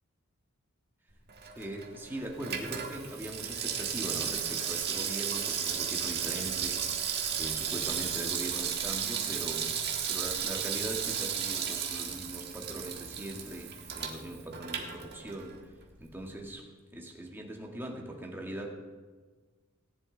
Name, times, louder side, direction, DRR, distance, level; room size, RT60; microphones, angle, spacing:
Water tap faucet / Sink (filling or washing), 1.3-15.6 15.9-16.0, right 8 dB, 50° right, 1.5 m, -34 dB
voice 1, 1.6-6.9 7.3-9.7 10.1-15.6 16.0-18.7, right 1 dB, 10° right, 0 dB, 1.7 m, -40 dB
17.5 x 10.5 x 3.9 m, 1.4 s
head